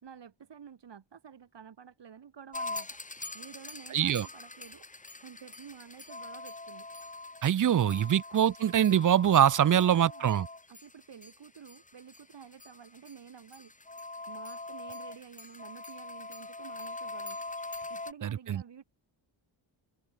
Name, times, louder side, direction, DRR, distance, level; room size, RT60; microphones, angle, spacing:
voice 1, 0.0-3.0 3.3-4.9 5.2-6.9 7.6-8.1 9.6-10.3 10.7-13.7 14.2-17.6 17.9-18.8, right 7 dB, 55° right, 2.5 m, -51 dB
sound 1, 2.5-18.1, left 2 dB, 15° left, 1.8 m, -43 dB
voice 2, 3.9-4.3 7.4-10.5 18.2-18.6, right 10 dB, 40° right, 0.5 m, -24 dB
open air
wide cardioid pair, 135°, 49 cm